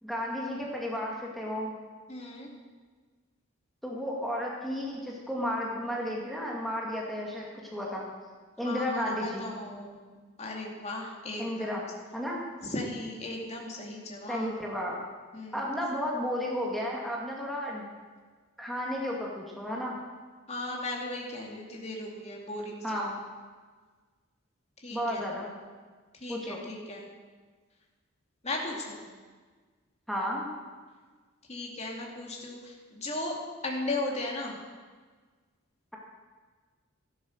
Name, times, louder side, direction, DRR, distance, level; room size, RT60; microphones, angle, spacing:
voice 1, 0.0-1.7 3.8-8.0 8.6-9.4 11.4-11.8 12.1-12.4 14.3-15.0 15.5-17.8 18.6-20.0 22.8-23.1 24.9-25.5 26.3-26.6 30.1-30.5, equal, ahead, -3 dB, 2.3 m, -33 dB
voice 2, 2.1-2.5 8.6-10.0 10.4-11.7 12.6-14.6 15.3-15.7 20.5-23.0 24.8-25.3 26.2-27.0 28.4-29.0 31.5-33.4 33.6-34.6, left 2 dB, 30° left, -1 dB, 2.5 m, -36 dB
13.0 x 12.0 x 6.6 m, 1.5 s
head